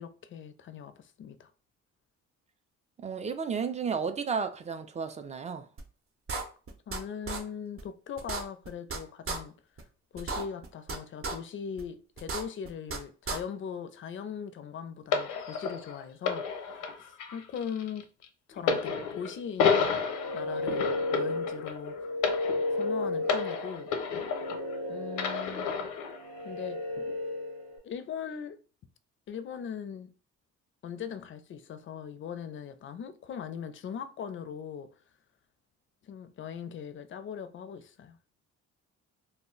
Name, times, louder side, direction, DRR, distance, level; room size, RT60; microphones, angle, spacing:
voice 1, 0.0-1.5 6.9-9.6 10.1-18.1 18.5-19.9 20.3-22.0 22.7-23.9 24.9-25.7 26.4-26.8 27.8-28.6 29.3-30.1 30.8-34.9 36.0-38.2, left 7 dB, 40° left, 0.4 m, -40 dB
voice 2, 3.0-5.6, right 6 dB, 25° right, 0.3 m, -32 dB
sound 1, 5.8-5.9 6.3-7.0 7.3-7.4 7.8-7.9 8.2-9.0 9.3-9.4 9.8-9.9 10.2-11.0 11.2-11.3 11.8-11.9 12.2-13.0 13.3-13.4, right 4 dB, 45° right, 0.7 m, -34 dB
sound 2, 15.1-24.8 25.1-26.2 27.0-27.1, left 5 dB, 85° left, 0.6 m, -31 dB
sound 3, 19.9-27.8, left 2 dB, 80° right, 0.7 m, -34 dB
2.2 x 2.1 x 3.7 m
cardioid pair, 90°, 30 cm